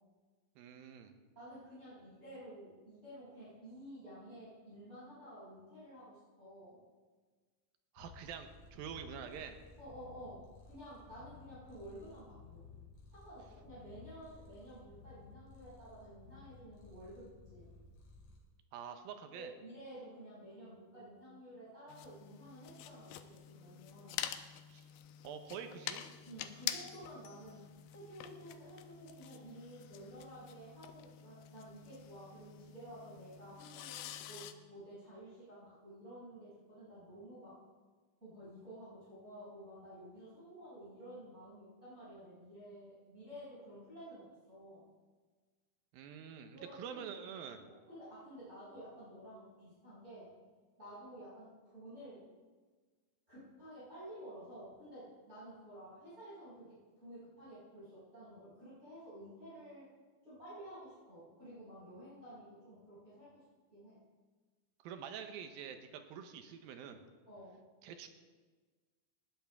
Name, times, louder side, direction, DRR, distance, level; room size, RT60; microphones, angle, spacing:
voice 1, 0.6-1.1 7.9-9.6 18.7-19.5 24.7-24.9 25.2-26.0 45.9-47.7 64.8-67.1 67.8-68.1, right 7 dB, 75° right, 7 dB, 2.5 m, -46 dB
voice 2, 1.4-6.8 9.8-12.7 13.1-17.7 19.3-24.3 26.3-34.0 34.3-37.6 38.2-44.9 46.5-47.0 47.6-50.4 50.8-52.3 53.3-59.9 60.2-63.4 63.7-64.0 67.3-67.6, right 1 dB, 15° right, -11 dB, 5.8 m, -52 dB
Purr, 8.0-18.4, left 4 dB, 45° left, 3.7 m, -57 dB
sound 1, 21.9-34.5, left 11 dB, 80° left, 2.3 m, -47 dB
19.5 x 13.5 x 3.5 m, 1.4 s
omnidirectional pair, 4.7 m